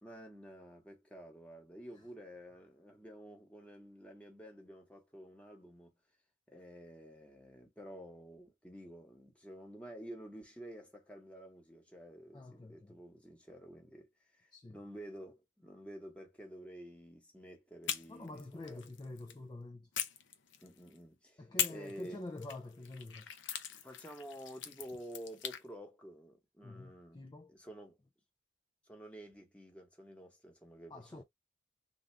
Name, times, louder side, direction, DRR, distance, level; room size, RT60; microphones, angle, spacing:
voice 1, 0.0-5.9 6.5-14.1 14.4-18.8 20.6-21.4 21.7-22.2 23.7-28.0 28.9-31.2, equal, 5° left, 1.1 m, -51 dB
voice 2, 12.3-13.0 14.5-14.8 18.1-19.9 21.4-23.3 26.6-27.6 30.9-31.2, left 2 dB, 20° left, 0.4 m, -47 dB
sound 1, 17.8-19.4 19.9-21.0 21.6-25.6, left 9 dB, 65° left, 0.6 m, -41 dB
3.5 x 2.4 x 3.2 m
head